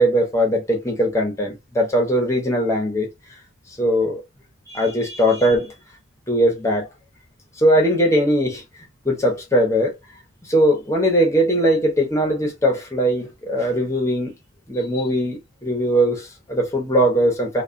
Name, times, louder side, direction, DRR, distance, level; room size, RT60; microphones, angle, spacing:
voice 1, 0.0-3.1 3.8-4.2 4.7-5.7 6.3-6.9 7.6-8.6 9.0-9.9 10.5-14.3 14.7-17.6, equal, 15° left, 0.8 m, -20 dB
2.3 x 2.3 x 2.5 m
head